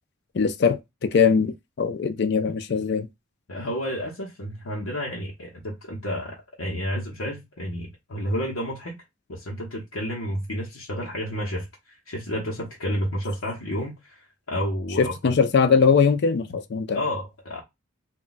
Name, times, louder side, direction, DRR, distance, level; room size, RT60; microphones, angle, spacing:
voice 1, 0.3-3.1 15.0-17.0, left 5 dB, 50° left, 0.4 m, -21 dB
voice 2, 3.5-9.0 9.3-11.7 12.1-15.3 16.9-17.6, equal, 80° left, 0.8 m, -30 dB
2.2 x 2.2 x 3.9 m
head